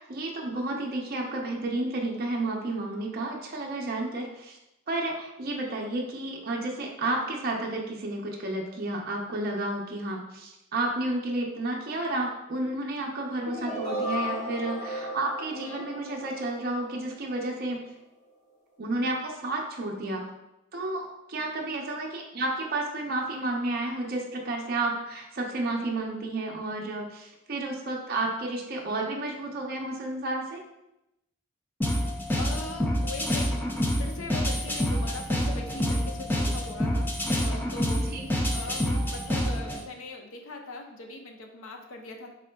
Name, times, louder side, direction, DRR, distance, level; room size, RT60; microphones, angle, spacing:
voice 1, 0.0-4.6 4.9-17.8 18.8-20.3 20.7-30.6 38.1-38.3, right 2 dB, 45° right, 0 dB, 0.5 m, -31 dB
sound 1, 13.4-17.4, equal, 40° left, 1.4 m, -35 dB
voice 2, 15.5-15.9 32.4-33.6 34.0-42.4, left 3 dB, 75° left, 3 dB, 0.6 m, -41 dB
sound 2, 31.8-39.8, equal, 10° left, 0.3 m, -27 dB
3.7 x 3.5 x 2.2 m, 0.89 s
head